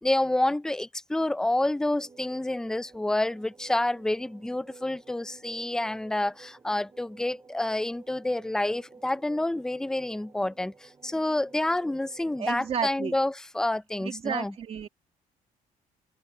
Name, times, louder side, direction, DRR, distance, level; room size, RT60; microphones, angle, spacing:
voice 1, 0.0-14.5, left 1 dB, 5° left, 0.6 m, -28 dB
sound 1, 2.0-13.3, right 4 dB, 20° right, 6.1 m, -54 dB
voice 2, 12.4-13.1 14.0-14.9, right 7 dB, 40° right, 2.1 m, -32 dB
cardioid pair, 165°, 15 cm